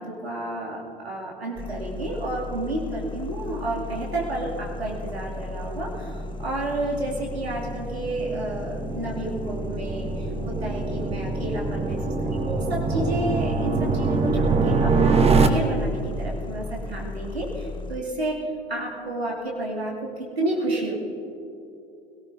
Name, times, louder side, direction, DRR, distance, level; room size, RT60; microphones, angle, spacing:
voice 1, 0.0-20.9, right 2 dB, 80° right, -3 dB, 2.6 m, -31 dB
sound 1, 1.6-18.0, left 3 dB, 15° left, 0.6 m, -36 dB
sound 2, 4.3-15.5, right 4 dB, 20° right, 0.9 m, -25 dB
21.5 x 17.5 x 2.7 m, 2.7 s
figure-of-eight pair, 75°, 31 cm